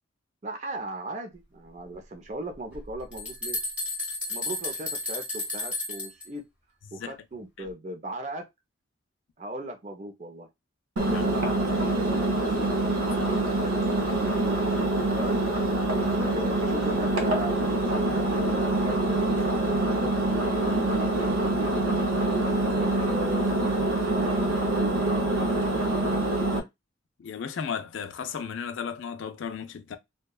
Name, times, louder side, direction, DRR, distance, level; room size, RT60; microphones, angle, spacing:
voice 1, 0.4-3.6 4.3-6.4 6.9-8.5 9.4-10.5 11.0-12.7 13.1-15.4 16.2-17.6 17.9-21.8 22.5-25.5 25.8-26.6, right 1 dB, 35° right, 0.5 m, -38 dB
sound 1, 2.7-6.2, left 2 dB, 5° right, 0.8 m, -32 dB
Engine, 11.0-26.6, right 2 dB, 80° right, 0.6 m, -25 dB
voice 2, 27.2-30.0, left 7 dB, 65° left, 0.4 m, -35 dB
2.7 x 2.2 x 2.2 m
head